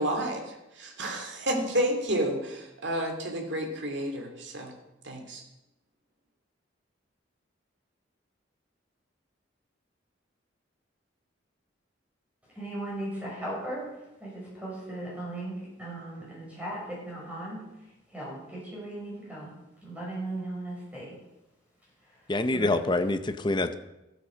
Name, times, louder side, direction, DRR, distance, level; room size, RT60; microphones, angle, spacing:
voice 1, 0.0-4.7 5.0-5.4, right 1 dB, 65° right, 3 dB, 2.4 m, -30 dB
voice 2, 12.6-13.9 14.2-17.6 18.1-21.1 22.5-22.7, right 1 dB, 10° right, -5 dB, 5.7 m, -37 dB
voice 3, 22.3-23.7, left 2 dB, 25° left, 9 dB, 0.7 m, -26 dB
13.0 x 8.6 x 6.3 m, 0.96 s
head